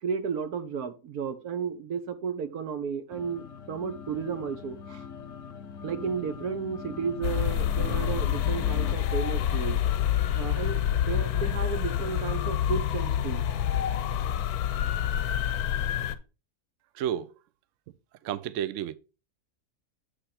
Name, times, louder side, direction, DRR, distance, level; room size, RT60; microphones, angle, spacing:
voice 1, 0.0-5.0 5.8-9.8 10.3-13.4, right 6 dB, 85° right, 1.4 m, -33 dB
sound 1, 3.1-8.9, left 6 dB, 65° left, 0.9 m, -42 dB
sound 2, 7.2-16.2, left 10 dB, 80° left, 1.2 m, -27 dB
voice 2, 16.9-17.3 18.2-19.0, right 10 dB, 70° right, 0.8 m, -31 dB
8.1 x 3.3 x 5.8 m
omnidirectional pair, 1.6 m